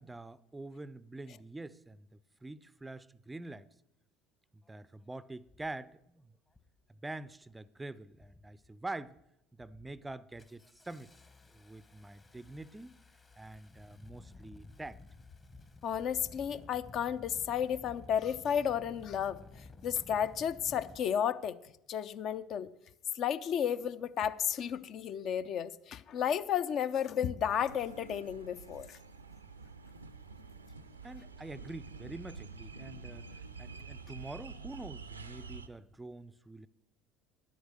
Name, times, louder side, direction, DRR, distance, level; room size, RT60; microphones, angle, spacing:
voice 1, 0.0-2.1 2.4-3.7 4.5-6.3 7.0-9.2 9.5-11.1 11.5-13.0 13.4-15.0 31.0-36.7, right 2 dB, 10° right, 0.4 m, -45 dB
Engine starting, 4.6-4.7 5.5-5.8 6.5-6.8 7.2-7.7 8.1-8.7 9.1-9.3 9.6-21.0, left 3 dB, 25° left, 1.0 m, -55 dB
voice 2, 15.8-21.6 21.9-22.7 23.1-29.0, left 8 dB, 45° left, 0.5 m, -33 dB
sound 1, 27.6-35.7, right 4 dB, 85° right, 0.5 m, -48 dB
10.5 x 8.0 x 6.3 m
figure-of-eight pair, 65°, 0 cm